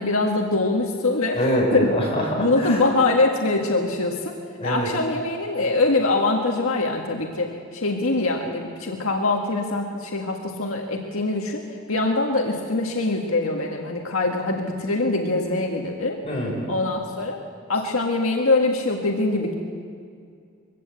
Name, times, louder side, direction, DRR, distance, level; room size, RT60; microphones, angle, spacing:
voice 1, 0.0-1.4 1.7-1.9 2.4-4.4 4.6-16.2 16.7-17.4 17.7-19.5, left 2 dB, 80° left, 1 dB, 1.7 m, -23 dB
voice 2, 1.3-2.9 4.6-4.9 16.2-16.7, equal, 30° left, -2 dB, 5.5 m, -24 dB
22.5 x 16.0 x 8.2 m, 2.3 s
head